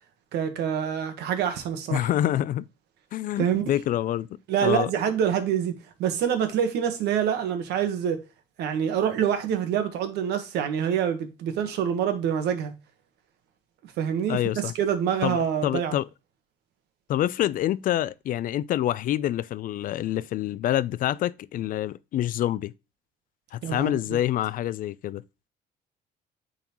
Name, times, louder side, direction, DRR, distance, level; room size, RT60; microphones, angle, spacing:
voice 1, 0.3-2.1 3.4-3.6 4.5-8.2 8.6-12.7 14.0-15.9 23.6-24.2, right 8 dB, 75° right, 1.3 m, -26 dB
voice 2, 1.9-2.6 3.1-4.3 4.6-4.9 14.3-14.7 15.2-16.0 17.1-22.7 23.5-25.2, left 12 dB, 55° left, 0.4 m, -26 dB
9.0 x 3.8 x 3.0 m
cardioid pair, 110°, 17 cm